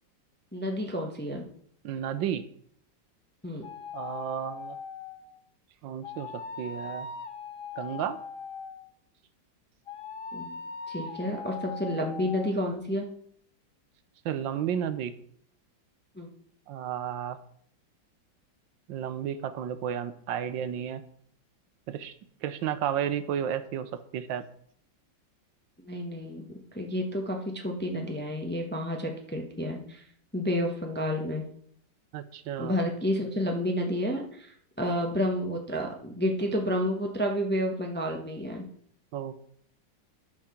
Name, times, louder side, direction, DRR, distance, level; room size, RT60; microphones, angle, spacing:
voice 1, 0.5-1.4 3.4-3.7 10.3-10.6 10.9-13.1 16.2-16.3 25.8-26.4 26.7-30.0 30.3-31.4 32.6-38.6, equal, 10° left, 2 dB, 0.8 m, -30 dB
voice 2, 1.8-2.4 3.9-4.8 5.8-7.1 7.8-8.2 14.2-15.1 16.7-17.4 18.9-21.0 21.9-22.1 22.4-24.4 32.1-32.7 39.1-39.4, right 9 dB, 90° right, 12 dB, 1.5 m, -32 dB
sound 1, 3.6-5.4 6.0-8.9 9.9-12.5, left 5 dB, 70° left, 0.5 m, -40 dB
12.0 x 4.8 x 5.8 m, 0.63 s
omnidirectional pair, 2.0 m